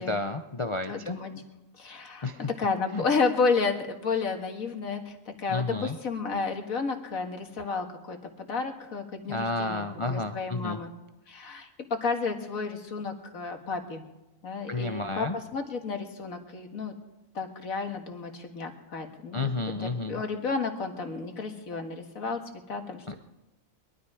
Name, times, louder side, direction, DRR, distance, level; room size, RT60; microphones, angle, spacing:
voice 1, 0.0-1.2 2.2-2.5 2.9-3.0 5.5-6.0 9.3-10.8 14.7-15.3 19.3-20.2 23.1-23.2, left 2 dB, 30° left, 7 dB, 0.6 m, -31 dB
voice 2, 0.9-1.4 1.8-2.3 2.6-10.9 11.3-14.0 14.4-16.9 17.3-22.4 22.7-23.1, left 4 dB, 90° left, 4 dB, 2.1 m, -31 dB
22.0 x 12.5 x 4.9 m, 0.98 s
omnidirectional pair, 1.4 m